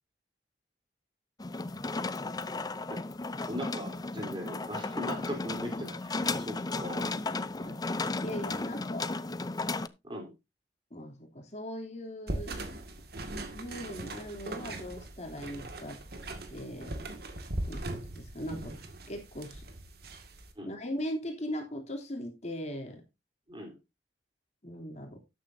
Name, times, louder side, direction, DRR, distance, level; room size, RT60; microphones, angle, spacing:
sound 1, 1.4-9.9, left 3 dB, 20° left, 0.6 m, -34 dB
voice 1, 2.2-2.8 7.2-7.4 7.6-9.1 10.9-12.6 13.5-16.0 16.5-17.0 17.6-18.8 19.1-19.6 20.6-23.0 24.6-25.2, equal, 40° left, 3 dB, 3.1 m, -40 dB
voice 2, 3.5-7.7 10.0-10.3 20.6-20.7 23.5-23.7, equal, 30° right, 3 dB, 3.9 m, -40 dB
sound 2, 12.3-20.5, right 1 dB, 60° right, 2.1 m, -40 dB
13.0 x 9.4 x 2.7 m, 0.24 s
head